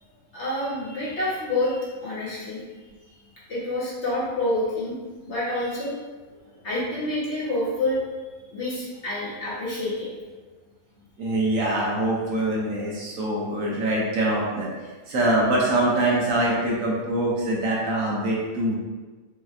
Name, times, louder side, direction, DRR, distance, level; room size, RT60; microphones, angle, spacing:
voice 1, 0.3-2.6 3.5-4.9 5.2-6.0 6.6-8.0 8.5-10.1, left 1 dB, 50° left, -8 dB, 1.4 m, -27 dB
voice 2, 11.2-14.7 15.1-18.8, right 1 dB, 65° right, -4 dB, 1.1 m, -24 dB
4.8 x 2.9 x 2.4 m, 1.3 s
omnidirectional pair, 1.5 m